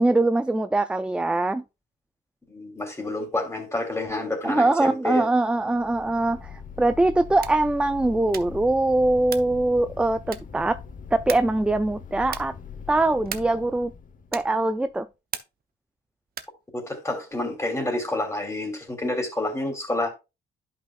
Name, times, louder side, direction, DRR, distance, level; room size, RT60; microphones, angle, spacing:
voice 1, 0.0-1.6 4.4-10.8 11.1-12.5 12.9-13.9 14.3-15.1, right 2 dB, 5° right, 0.3 m, -22 dB
voice 2, 2.5-5.2 16.7-20.1, left 2 dB, 15° left, 3.0 m, -29 dB
sound 1, 5.5-14.8, left 6 dB, 45° left, 1.0 m, -41 dB
sound 2, 7.3-7.7 8.3-8.7 9.3-9.6 10.3-10.7 11.3-11.6 12.3-12.6 13.3-13.7 14.3-14.6 15.3-15.7 16.3-16.6, right 8 dB, 50° right, 0.8 m, -37 dB
10.5 x 5.5 x 2.4 m
cardioid pair, 90°, 20 cm